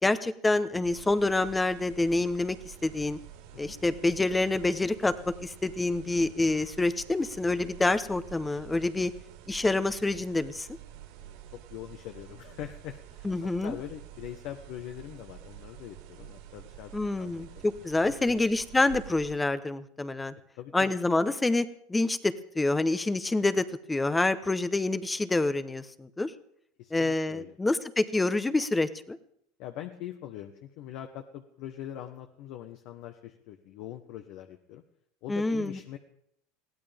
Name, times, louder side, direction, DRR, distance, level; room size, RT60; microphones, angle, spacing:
voice 1, 0.0-3.2 3.6-5.1 5.4-9.1 9.5-10.7 13.2-13.8 16.9-20.3 20.7-26.3 26.9-29.2 35.3-35.8, left 2 dB, 10° left, 12 dB, 1.0 m, -27 dB
sound 1, 0.8-19.4, right 11 dB, 70° right, 4.5 m, -48 dB
voice 2, 11.2-17.6 18.0-18.4 20.6-20.9 26.8-27.5 29.6-34.8 35.2-36.0, left 12 dB, 60° left, 5 dB, 1.3 m, -43 dB
22.0 x 16.0 x 3.6 m, 0.72 s
supercardioid pair, 115°, 0 cm